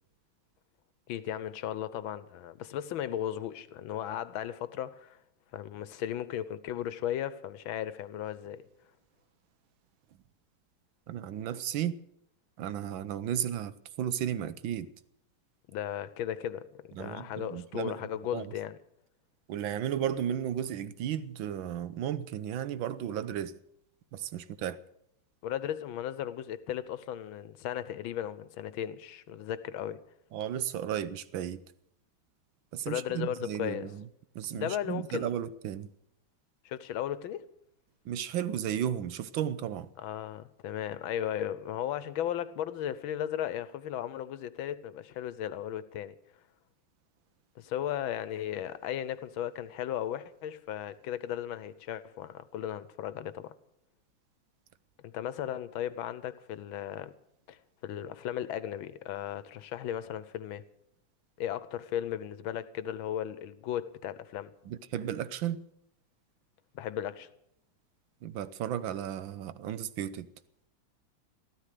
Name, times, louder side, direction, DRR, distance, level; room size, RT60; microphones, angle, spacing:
voice 1, 1.1-5.2 5.5-8.6 15.7-18.8 25.4-30.0 32.9-33.9 34.5-35.3 36.6-37.4 40.0-46.1 47.6-53.5 55.0-57.1 57.5-57.6 57.8-60.6 61.4-64.5 66.7-67.3, left 10 dB, 85° left, 1.6 m, -36 dB
voice 2, 11.1-12.0 12.6-14.9 16.9-18.0 18.3-18.5 19.5-23.5 24.1-24.8 30.3-31.6 32.7-34.0 34.3-35.9 38.0-39.9 64.7-65.6 68.2-70.3, right 10 dB, 75° right, 1.5 m, -34 dB
14.0 x 13.5 x 6.7 m
omnidirectional pair, 2.2 m